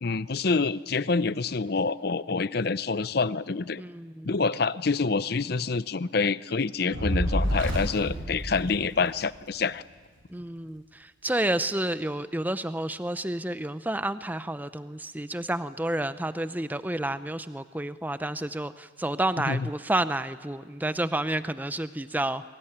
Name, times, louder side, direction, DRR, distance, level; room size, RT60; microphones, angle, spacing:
voice 1, 0.0-3.8 4.2-9.8 19.5-19.7, left 4 dB, 55° left, 16 dB, 0.6 m, -27 dB
voice 2, 3.8-4.3 8.1-8.3 10.3-22.4, right 1 dB, 10° right, 12 dB, 0.6 m, -30 dB
Fire, 6.9-9.4, equal, 85° right, 6.8 m, -29 dB
23.5 x 20.0 x 10.0 m, 1.6 s
head